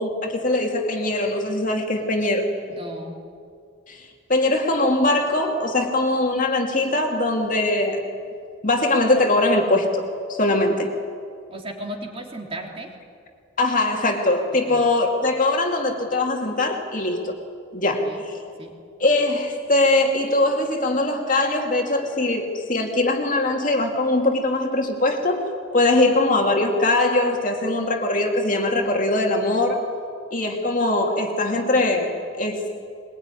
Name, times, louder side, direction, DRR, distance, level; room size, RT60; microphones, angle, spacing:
voice 1, 0.0-2.5 3.9-8.0 8.6-10.9 13.6-17.3 17.7-18.3 19.0-25.4 25.7-29.8 30.3-32.8, left 2 dB, 40° left, 2 dB, 2.6 m, -21 dB
voice 2, 2.7-3.1 11.5-12.9 14.7-14.8 18.0-18.2 18.6-18.7, right 1 dB, 25° right, 1 dB, 3.3 m, -35 dB
22.5 x 22.0 x 9.9 m, 2.3 s
head